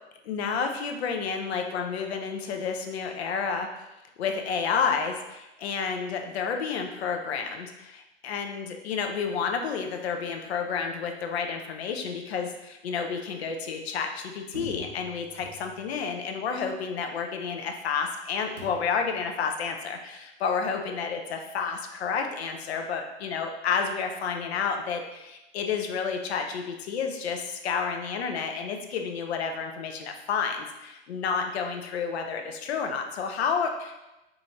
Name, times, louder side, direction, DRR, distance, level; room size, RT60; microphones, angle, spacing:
voice 1, 0.2-3.7 4.2-34.0, left 6 dB, 65° left, 4 dB, 0.6 m, -30 dB
sound 1, 14.5-16.0 18.6-19.1, right 1 dB, 85° right, 0.9 m, -44 dB
4.9 x 2.5 x 3.0 m, 0.99 s
figure-of-eight pair, 95°, 34 cm